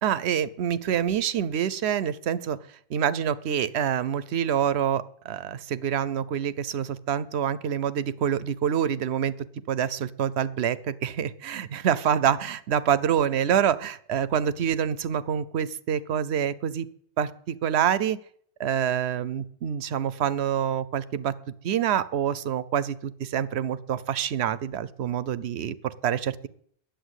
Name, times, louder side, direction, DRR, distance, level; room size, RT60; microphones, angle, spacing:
voice 1, 0.0-2.6 2.9-9.3 9.7-16.9 17.2-18.2 18.6-21.3 21.6-26.5, right 9 dB, 75° right, 17 dB, 0.9 m, -26 dB
10.0 x 8.2 x 8.0 m, 0.63 s
omnidirectional pair, 1.1 m